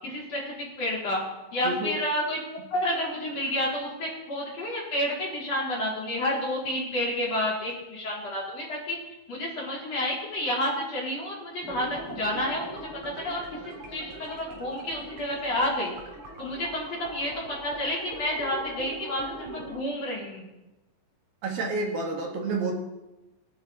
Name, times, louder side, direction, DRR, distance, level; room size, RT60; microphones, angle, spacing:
voice 1, 0.0-1.2 1.5-2.4 2.7-9.0 9.3-15.9 16.4-20.5, left 1 dB, 40° left, -4 dB, 4.6 m, -30 dB
sound 1, 11.6-19.8, right 2 dB, 45° right, 4.0 m, -41 dB
voice 2, 21.4-22.7, right 3 dB, 60° right, 0 dB, 3.3 m, -29 dB
24.0 x 10.5 x 4.2 m, 1.0 s
omnidirectional pair, 5.0 m